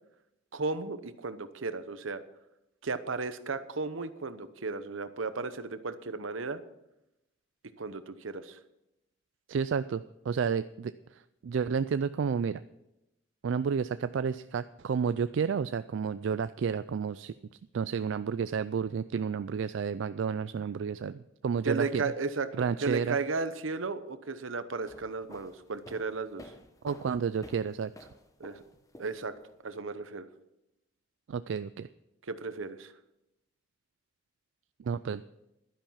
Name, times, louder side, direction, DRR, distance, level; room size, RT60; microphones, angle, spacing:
voice 1, 0.5-2.2 2.8-6.6 7.8-8.6 21.6-26.5 28.4-28.6 29.0-29.3 29.6-30.3 32.3-32.9, right 4 dB, 85° right, 12 dB, 0.9 m, -34 dB
voice 2, 9.5-12.6 13.4-17.3 17.7-22.0 22.6-23.2 26.8-28.1 31.3-31.9 34.8-35.2, right 6 dB, 70° right, 13 dB, 0.3 m, -31 dB
sound 1, 24.8-29.6, left 1 dB, 15° left, 0.9 m, -52 dB
11.5 x 10.5 x 5.7 m, 0.89 s
head